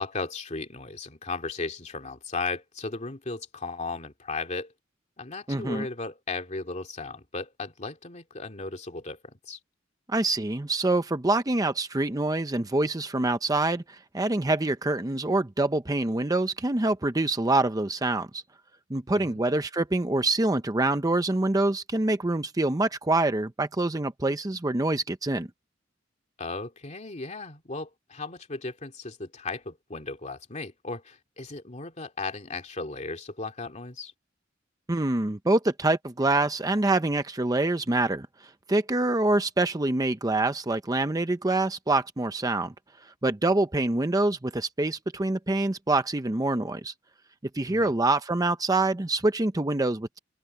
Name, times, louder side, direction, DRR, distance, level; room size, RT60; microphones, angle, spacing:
voice 1, 0.0-4.7 5.2-9.6 19.1-19.4 26.4-34.1 47.7-47.9, left 3 dB, 35° left, 2.6 m, -36 dB
voice 2, 5.5-5.9 10.1-18.4 18.9-25.5 34.9-38.3 38.7-42.7 43.2-46.9 47.5-50.2, right 2 dB, 20° right, 0.7 m, -25 dB
open air
head